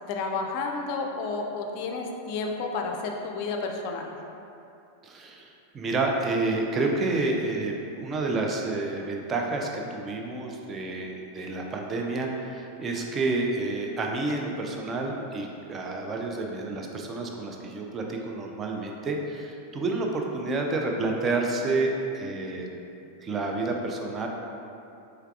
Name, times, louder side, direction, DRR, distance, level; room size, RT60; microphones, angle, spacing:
voice 1, 0.1-4.1, left 4 dB, 45° left, 2 dB, 0.4 m, -31 dB
voice 2, 5.0-22.8 23.2-24.3, right 3 dB, 25° right, 0 dB, 0.4 m, -29 dB
4.5 x 3.3 x 2.3 m, 2.7 s
figure-of-eight pair, 90°, 0 cm